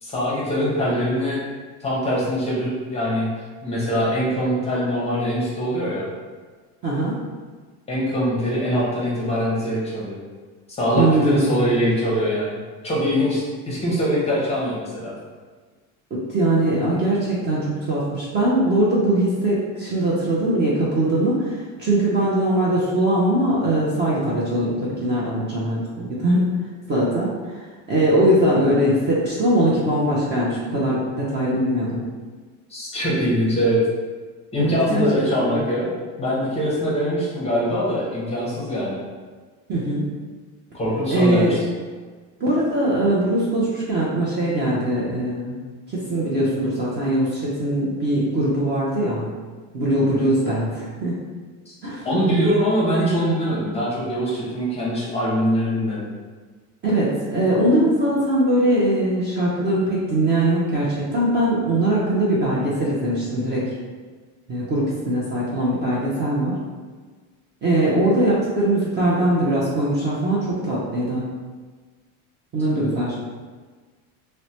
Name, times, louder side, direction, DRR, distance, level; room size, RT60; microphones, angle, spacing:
voice 1, 0.0-1.4 1.8-3.3 3.6-6.1 7.9-10.2 10.7-12.6 12.8-15.1 32.7-33.8 34.5-35.9 36.2-39.0 40.7-41.6 51.7-51.8 52.0-56.1, equal, 15° left, -6 dB, 0.6 m, -23 dB
voice 2, 6.8-7.2 10.9-11.8 16.1-26.6 26.9-32.0 34.6-35.1 35.4-35.6 39.7-40.0 41.1-41.6 42.4-45.6 45.9-49.3 49.7-51.2 51.8-52.0 56.8-63.7 64.5-66.6 67.6-71.3 72.5-73.1, right 1 dB, 25° right, -7 dB, 0.4 m, -21 dB
3.0 x 2.0 x 2.7 m, 1.4 s
cardioid pair, 130°, 40 cm